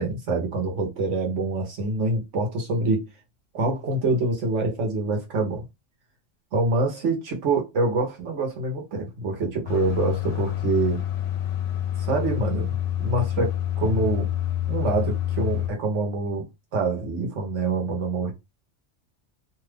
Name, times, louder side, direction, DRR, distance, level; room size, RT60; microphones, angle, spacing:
voice 1, 0.0-3.0 3.5-5.6 6.5-11.0 12.0-14.3 14.7-18.3, right 3 dB, 70° right, 1.2 m, -26 dB
sound 1, 9.7-15.7, left 11 dB, 75° left, 0.9 m, -27 dB
2.7 x 2.3 x 3.3 m
omnidirectional pair, 1.3 m